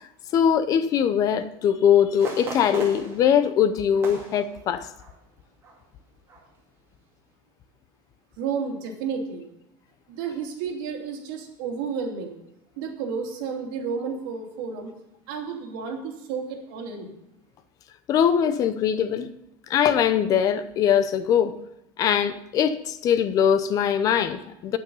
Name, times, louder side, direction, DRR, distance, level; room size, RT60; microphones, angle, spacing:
voice 1, 0.3-4.9 18.1-19.3 19.7-21.5 22.0-24.8, left 8 dB, 35° left, 12 dB, 0.7 m, -21 dB
sound 1, 2.2-5.3 5.6-5.8 6.3-6.6 7.1-7.2, right 3 dB, 25° right, 2.2 m, -39 dB
voice 2, 8.4-9.5 10.1-12.4 12.8-14.9 15.3-17.1, right 6 dB, 70° right, 0 dB, 2.9 m, -31 dB
9.4 x 9.1 x 5.5 m, 0.84 s
cardioid pair, 175°, 11 cm